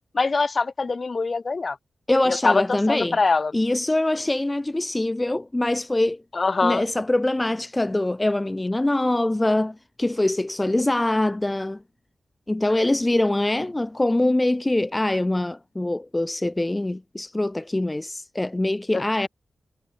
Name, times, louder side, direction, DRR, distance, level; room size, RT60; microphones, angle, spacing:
voice 1, 0.1-1.8 2.3-3.5 6.3-6.8 18.9-19.1, left 4 dB, 40° left, 2.4 m, -23 dB
voice 2, 2.1-3.2 3.5-6.2 6.6-11.8 12.5-19.3, left 1 dB, 15° left, 0.4 m, -23 dB
wide cardioid pair, 115°, 0 cm